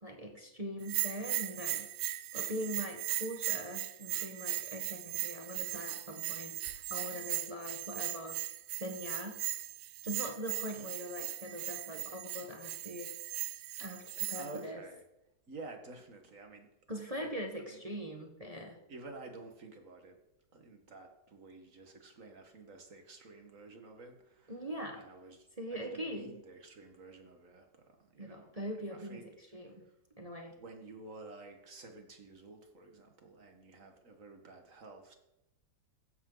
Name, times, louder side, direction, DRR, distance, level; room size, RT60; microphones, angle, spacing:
voice 1, 0.0-1.9 2.3-8.4 8.8-9.4 10.0-13.1 13.8-14.8 16.9-18.8 24.5-25.0 25.6-26.4 28.2-29.8 30.1-30.5, equal, 20° right, 2 dB, 1.3 m, -42 dB
Bell, 0.8-14.6, right 14 dB, 80° right, 1.2 m, -38 dB
voice 2, 14.4-15.0 15.5-16.7 17.2-17.8 18.9-20.2 20.5-24.6 24.9-29.2 29.7-29.8 30.5-35.1, right 3 dB, 50° right, 5 dB, 2.0 m, -51 dB
15.0 x 11.0 x 4.0 m, 0.93 s
omnidirectional pair, 1.9 m